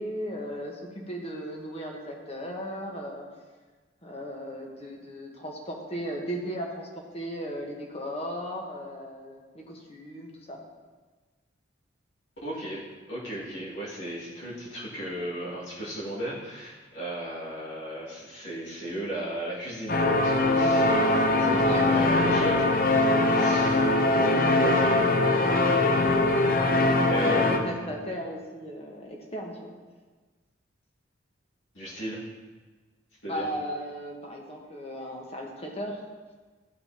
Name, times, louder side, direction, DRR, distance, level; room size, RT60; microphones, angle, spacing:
voice 1, 0.0-3.3 4.0-10.6 21.3-22.5 27.2-29.7 33.3-36.0, equal, 30° left, 0 dB, 1.2 m, -36 dB
voice 2, 12.4-12.8 13.1-24.0 24.6-26.1 27.1-27.9 31.7-32.2 33.2-33.5, right 1 dB, 75° left, -8 dB, 2.1 m, -36 dB
sound 1, 19.9-27.6, left 2 dB, 50° left, 0.6 m, -22 dB
13.0 x 5.2 x 2.9 m, 1.3 s
head